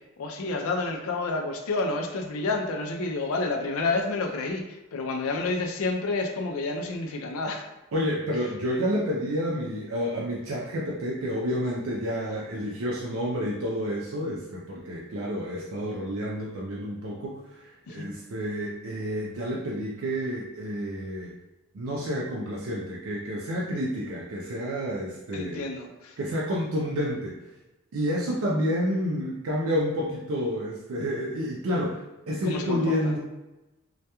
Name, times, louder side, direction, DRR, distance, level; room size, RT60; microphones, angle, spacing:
voice 1, 0.2-7.6 17.9-18.1 25.3-26.2 32.5-33.0, left 3 dB, 80° left, 4 dB, 0.4 m, -29 dB
voice 2, 7.9-21.4 21.7-25.6 26.2-27.4 27.9-33.2, equal, 70° right, -4 dB, 0.4 m, -29 dB
2.2 x 2.2 x 2.8 m, 1.0 s
head